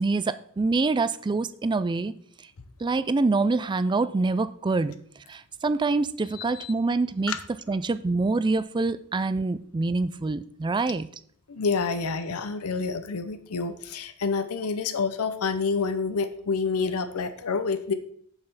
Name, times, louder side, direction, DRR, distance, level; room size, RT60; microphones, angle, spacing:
voice 1, 0.0-2.1 2.8-4.9 5.3-7.3 7.7-11.1, right 3 dB, 20° right, 15 dB, 0.3 m, -25 dB
voice 2, 6.4-6.7 7.3-7.4 11.5-17.9, left 4 dB, 90° left, 10 dB, 0.7 m, -28 dB
7.0 x 5.5 x 5.9 m, 0.62 s
head